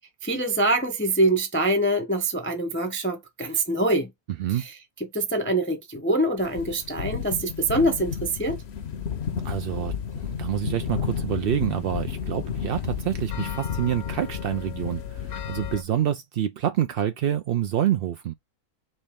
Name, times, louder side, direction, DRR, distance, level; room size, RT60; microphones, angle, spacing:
voice 1, 0.2-4.1 4.5-4.7 5.1-8.6, right 1 dB, 15° left, 0.5 m, -24 dB
sound 1, 6.4-15.8, left 7 dB, 55° left, 0.9 m, -32 dB
voice 2, 9.4-18.3, right 10 dB, 85° right, 0.5 m, -27 dB
4.6 x 3.2 x 3.5 m
omnidirectional pair, 1.5 m